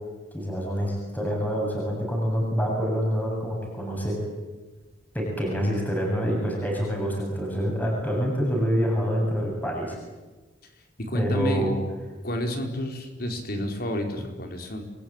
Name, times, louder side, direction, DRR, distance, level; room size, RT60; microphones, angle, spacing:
voice 1, 0.3-4.2 5.1-10.0 11.1-11.8, equal, 10° left, -1 dB, 7.5 m, -26 dB
voice 2, 11.0-11.7 12.2-14.8, equal, 55° left, 4 dB, 4.8 m, -30 dB
29.5 x 22.5 x 9.0 m, 1.2 s
head